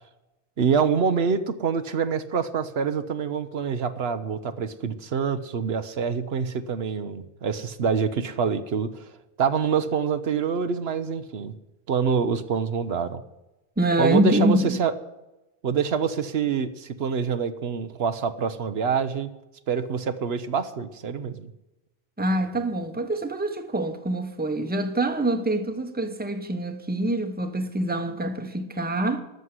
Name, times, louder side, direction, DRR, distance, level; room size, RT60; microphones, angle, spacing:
voice 1, 0.6-9.1 9.4-11.5 11.9-13.2 14.0-14.9 15.6-19.3 19.7-21.5, right 6 dB, 75° right, 1.1 m, -26 dB
voice 2, 13.8-14.8 22.2-29.2, right 1 dB, 10° right, 1.0 m, -25 dB
13.5 x 6.4 x 9.6 m
omnidirectional pair, 1.1 m